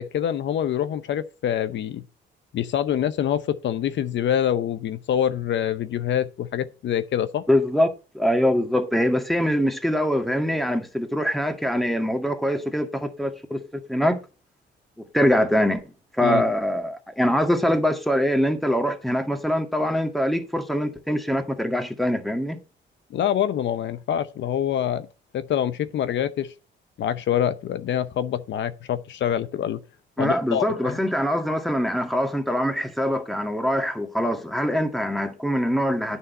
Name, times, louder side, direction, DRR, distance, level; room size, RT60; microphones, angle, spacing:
voice 1, 0.0-2.0 2.5-7.4 16.2-16.4 23.1-25.1 25.3-26.5 27.0-29.8 30.2-31.0, left 10 dB, 70° left, 0.8 m, -25 dB
voice 2, 7.5-7.9 8.1-14.2 15.1-15.8 16.1-22.6 30.2-36.2, equal, ahead, 2.0 m, -23 dB
9.5 x 6.3 x 5.3 m
cardioid pair, 90°, 20 cm